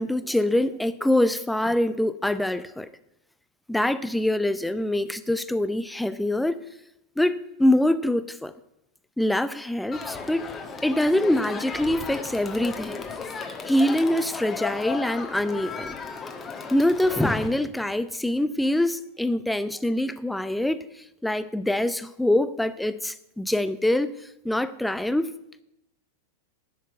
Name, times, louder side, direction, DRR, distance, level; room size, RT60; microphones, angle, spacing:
voice 1, 0.0-2.9 3.7-6.6 7.2-8.5 9.2-10.5 10.8-13.0 13.7-16.0 16.7-20.9 21.2-24.1 24.4-25.3, left 1 dB, 5° left, 0.6 m, -24 dB
Crowd, 9.9-17.5, left 5 dB, 20° left, 1.3 m, -35 dB
11.0 x 6.5 x 9.3 m
figure-of-eight pair, 90°, 0 cm